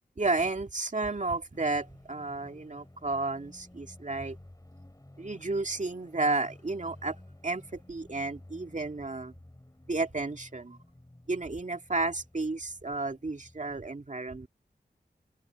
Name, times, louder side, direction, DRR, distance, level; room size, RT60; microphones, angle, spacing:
voice 1, 0.2-4.4 5.2-7.2 7.4-9.3 9.9-10.8 11.3-14.5, right 3 dB, 45° right, 2.2 m, -32 dB
sound 1, 1.5-13.9, left 1 dB, 20° left, 5.1 m, -53 dB
open air
wide cardioid pair, 70°, 18 cm